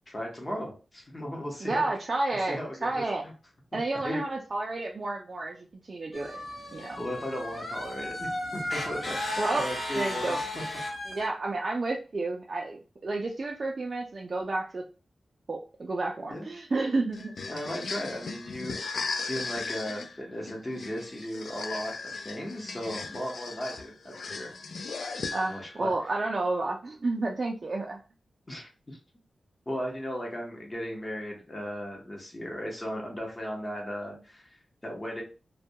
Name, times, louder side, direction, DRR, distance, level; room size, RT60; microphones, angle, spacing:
voice 1, 0.1-1.9 2.5-3.3 3.7-4.2 7.0-9.2 9.5-10.6 16.3-16.5 17.5-24.5 25.5-25.9 28.5-29.0 29.7-35.2, equal, 20° left, -1 dB, 0.9 m, -36 dB
voice 2, 1.6-3.2 3.7-6.3 6.7-7.0 9.4-9.7 10.0-10.4 11.1-14.8 15.5-17.3 25.3-28.0, right 2 dB, 45° right, 0 dB, 0.3 m, -31 dB
sound 1, 6.1-11.3, left 1 dB, 55° left, 0.8 m, -35 dB
sound 2, 17.1-25.8, left 4 dB, 75° left, 0.3 m, -37 dB
2.2 x 2.2 x 2.7 m, 0.34 s
wide cardioid pair, 115°, 0 cm